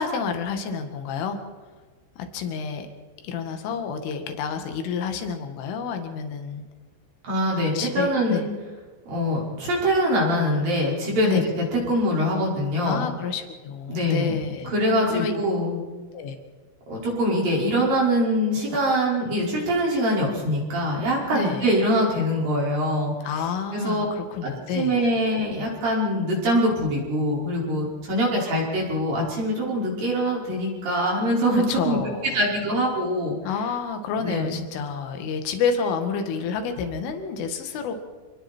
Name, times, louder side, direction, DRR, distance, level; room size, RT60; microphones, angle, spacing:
voice 1, 0.0-1.4 2.2-2.9 3.2-6.6 7.7-8.5 11.2-11.4 12.8-14.7 15.1-15.3 16.1-16.4 21.3-21.7 23.2-25.1 31.5-32.4 33.4-37.9, left 6 dB, 75° left, 6 dB, 4.5 m, -29 dB
voice 2, 7.2-8.4 9.1-13.1 13.9-14.4 14.7-15.8 16.9-23.1 23.7-24.0 24.4-32.0 32.3-33.4 34.2-34.6, equal, 45° right, -3 dB, 7.0 m, -23 dB
28.5 x 20.5 x 4.6 m, 1.4 s
omnidirectional pair, 5.8 m